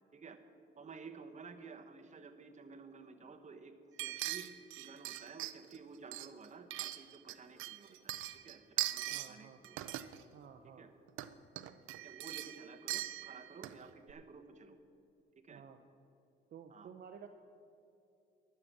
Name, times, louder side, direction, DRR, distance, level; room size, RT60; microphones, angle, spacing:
voice 1, 0.8-4.5 4.8-8.2 8.4-9.8 10.6-10.9 12.0-14.8 15.4-15.6 16.7-16.9, right 5 dB, 35° right, 7 dB, 1.1 m, -53 dB
sound 1, 4.0-5.8 6.1-7.3 7.6-9.3 9.6-10.2 11.1-11.3 11.6-13.8 14.1-14.2, right 15 dB, 90° right, 0.5 m, -40 dB
voice 2, 9.1-9.6 10.3-10.8 15.5-15.8 16.5-17.3, right 7 dB, 55° right, 5 dB, 0.7 m, -53 dB
12.0 x 6.8 x 7.4 m, 2.6 s
cardioid pair, 90°, 20 cm